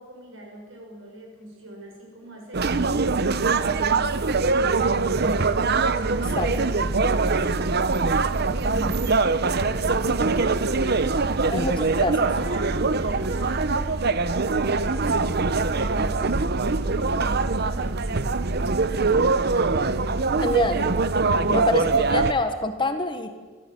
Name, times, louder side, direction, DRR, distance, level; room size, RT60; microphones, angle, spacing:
voice 1, 0.0-3.1 4.5-8.1 8.4-10.7 11.3-18.3 18.8-19.7 21.4-21.7, equal, 70° right, 1 dB, 6.4 m, -43 dB
sound 1, 2.5-22.3, right 3 dB, 50° right, 0.8 m, -23 dB
voice 2, 11.5-12.3 20.4-20.8 21.5-23.3, left 2 dB, 25° left, 7 dB, 1.4 m, -26 dB
24.0 x 14.0 x 7.8 m, 1.4 s
head